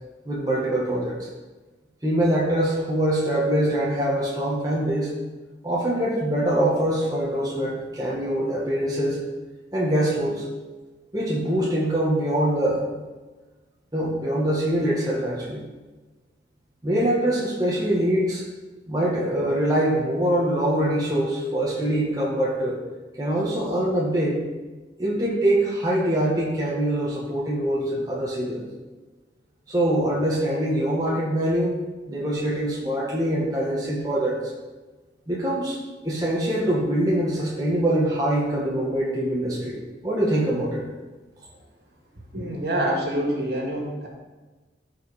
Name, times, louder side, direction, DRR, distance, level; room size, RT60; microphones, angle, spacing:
voice 1, 0.2-1.3 2.0-5.1 5.6-9.2 9.7-10.4 11.1-12.8 13.9-15.6 16.8-18.4 18.9-22.8 23.2-24.4 25.0-28.6 29.7-31.8 32.1-34.4 35.3-40.8, right 1 dB, 20° right, -5 dB, 1.6 m, -24 dB
voice 2, 42.3-44.1, right 1 dB, 60° right, -1 dB, 2.3 m, -26 dB
15.0 x 5.1 x 4.3 m, 1.2 s
head